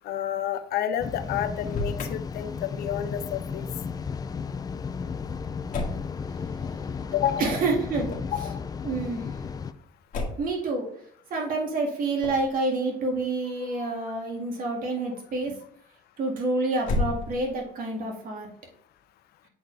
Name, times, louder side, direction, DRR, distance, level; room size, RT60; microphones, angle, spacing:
voice 1, 0.0-3.7 7.1-7.5 8.3-8.6 13.6-13.9, left 10 dB, 70° left, 10 dB, 0.7 m, -30 dB
sound 1, 1.0-9.7, left 5 dB, 25° left, 0.3 m, -34 dB
Motor vehicle (road), 1.6-2.1 5.7-6.1 8.0-8.4 10.1-10.6 12.2-12.5 16.8-17.6, left 2 dB, 50° left, 1.6 m, -31 dB
voice 2, 7.4-8.2 8.8-9.3 10.4-10.9 11.3-15.5 16.2-18.5, right 3 dB, 55° right, 0 dB, 2.0 m, -28 dB
7.7 x 4.4 x 3.3 m, 0.64 s
cardioid pair, 110°, 17 cm